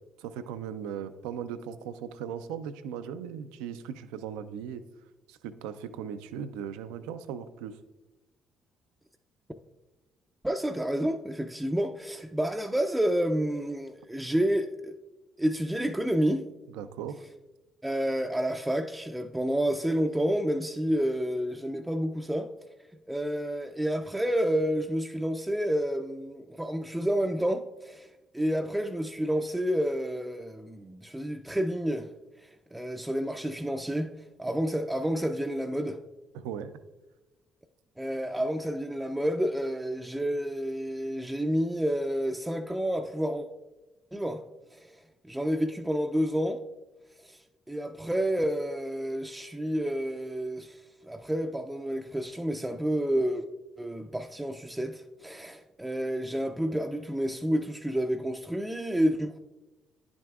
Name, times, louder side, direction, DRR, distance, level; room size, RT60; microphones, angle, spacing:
voice 1, 0.2-4.8 5.3-7.8 16.7-17.2 36.3-36.7, right 8 dB, 90° right, 0.4 m, -38 dB
voice 2, 10.4-14.9 15.4-16.4 17.8-22.5 23.1-32.1 32.4-34.1 34.4-36.0 38.0-43.5 44.1-44.4 44.7-45.0 45.3-46.6 47.2-47.4 47.7-53.4 53.8-59.4, equal, 10° right, 0.4 m, -29 dB
10.0 x 6.1 x 2.3 m
supercardioid pair, 60°, 0 cm